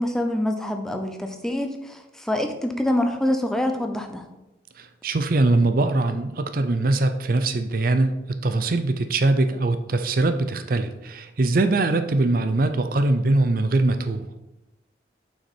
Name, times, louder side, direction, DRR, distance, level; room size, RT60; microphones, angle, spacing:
voice 1, 0.0-4.2, left 1 dB, 5° left, 4 dB, 0.6 m, -25 dB
voice 2, 4.8-14.3, right 2 dB, 50° right, 9 dB, 0.5 m, -22 dB
7.2 x 5.7 x 4.4 m, 0.96 s
head